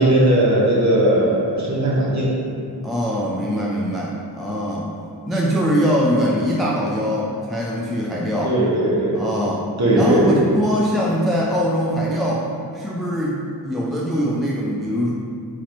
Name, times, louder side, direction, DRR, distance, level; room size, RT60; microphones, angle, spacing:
voice 1, 0.0-2.3 8.4-9.2 9.8-10.4, right 1 dB, 40° right, -6 dB, 1.3 m, -18 dB
voice 2, 2.8-4.9 5.3-8.5 9.1-9.7 9.9-12.5 12.7-15.1, equal, ahead, -5 dB, 0.4 m, -22 dB
4.2 x 4.0 x 3.1 m, 2.4 s
wide cardioid pair, 85°, 42 cm